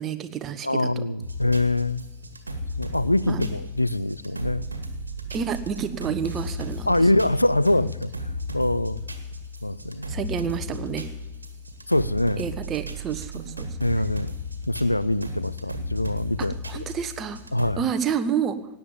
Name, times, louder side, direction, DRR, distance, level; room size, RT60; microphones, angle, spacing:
voice 1, 0.0-1.0 3.3-3.5 5.3-6.9 10.1-11.1 12.4-13.7 16.7-17.4 17.8-18.6, right 7 dB, 30° right, 11 dB, 1.2 m, -29 dB
voice 2, 0.6-2.1 2.8-4.7 6.9-9.1 9.6-10.1 11.9-12.4 13.8-14.3 14.7-16.6 17.5-17.8, left 1 dB, 85° left, 17 dB, 0.4 m, -24 dB
sound 1, 1.2-17.7, left 1 dB, 80° right, 1.7 m, -35 dB
17.0 x 9.1 x 8.8 m, 1.0 s
figure-of-eight pair, 90°, 0 cm